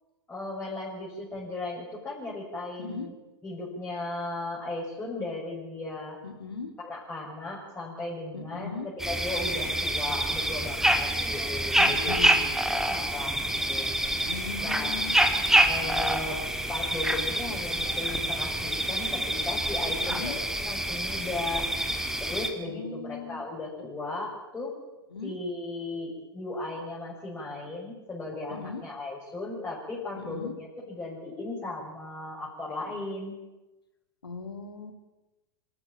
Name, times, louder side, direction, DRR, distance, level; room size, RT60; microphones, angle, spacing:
voice 1, 0.3-3.1 3.4-6.2 6.8-8.8 9.1-13.9 14.6-15.0 15.6-16.4 16.7-21.7 22.2-24.7 25.2-33.4, left 2 dB, 15° left, -5 dB, 6.6 m, -36 dB
voice 2, 6.2-6.7 8.3-8.9 11.8-12.4 14.2-15.2 20.0-20.4 22.6-23.4 25.1-25.4 28.5-28.8 30.2-30.5 34.2-34.9, left 4 dB, 85° left, 7 dB, 3.1 m, -38 dB
sound 1, 9.0-22.5, right 1 dB, 5° right, 2.7 m, -27 dB
25.5 x 14.0 x 8.9 m, 1.1 s
figure-of-eight pair, 95°, 12 cm